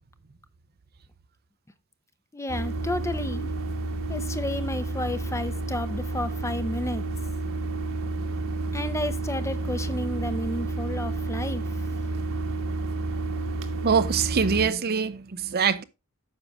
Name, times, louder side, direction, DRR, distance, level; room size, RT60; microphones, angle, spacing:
voice 1, 2.3-3.5 4.1-7.0 8.7-11.6, left 1 dB, 15° left, 0.7 m, -32 dB
sound 1, 2.5-14.7, right 2 dB, 65° right, 1.4 m, -30 dB
voice 2, 13.8-15.8, right 6 dB, 45° right, 0.6 m, -24 dB
9.7 x 6.6 x 3.5 m
head